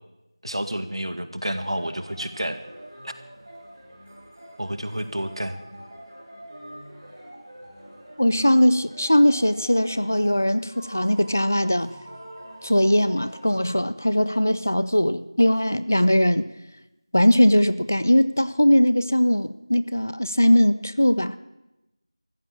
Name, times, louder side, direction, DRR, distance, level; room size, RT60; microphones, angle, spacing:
voice 1, 0.4-2.6 3.0-3.1 4.6-5.6, right 1 dB, 90° right, 1.8 m, -30 dB
sound 1, 1.6-13.7, equal, 15° right, 4.2 m, -44 dB
voice 2, 8.2-11.9 12.6-16.5 17.1-21.3, equal, 30° left, 0.5 m, -20 dB
14.5 x 13.0 x 7.4 m
figure-of-eight pair, 180°, 3 cm